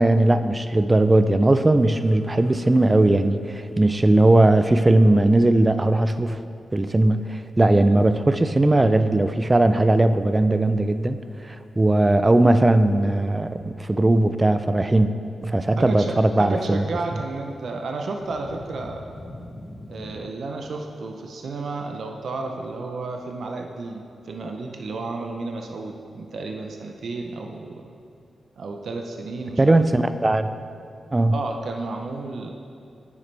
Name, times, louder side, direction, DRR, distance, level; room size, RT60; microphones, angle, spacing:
voice 1, 0.0-6.4 6.7-11.2 11.4-15.1 15.4-16.8 29.6-30.5 31.1-31.4, right 2 dB, 20° right, 10 dB, 0.4 m, -18 dB
sound 1, 1.8-6.8 7.1-7.4 7.8-8.5 9.0-9.1 9.4-9.6 9.9-10.3 10.9-14.3 14.5-14.6 18.2-20.2, left 1 dB, 10° left, 1.1 m, -46 dB
voice 2, 15.8-19.0 19.9-27.9 28.6-29.8 31.3-32.5, right 3 dB, 70° right, 3 dB, 0.6 m, -32 dB
10.0 x 7.2 x 3.3 m, 2.5 s
wide cardioid pair, 100°, 0 cm